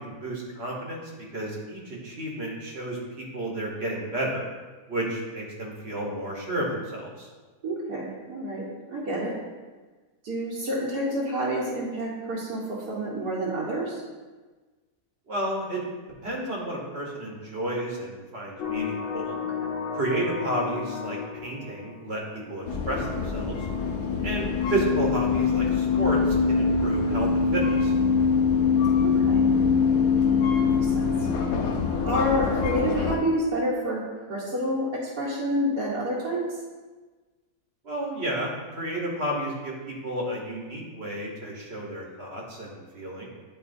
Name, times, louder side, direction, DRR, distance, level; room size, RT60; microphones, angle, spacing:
voice 1, 0.0-4.4 4.9-7.3 15.3-15.8 16.2-19.4 19.9-23.6 24.2-27.9 37.8-43.3, right 1 dB, 45° right, -2 dB, 1.2 m, -31 dB
voice 2, 7.6-9.3 10.2-14.0 19.3-19.7 29.0-29.5 30.5-31.3 32.0-36.4, equal, 80° right, -7 dB, 1.6 m, -29 dB
sound 1, 18.6-22.5, left 6 dB, 60° left, 0.9 m, -33 dB
sound 2, 22.6-33.2, left 5 dB, 90° left, 1.2 m, -23 dB
9.6 x 4.2 x 2.6 m, 1.3 s
omnidirectional pair, 1.7 m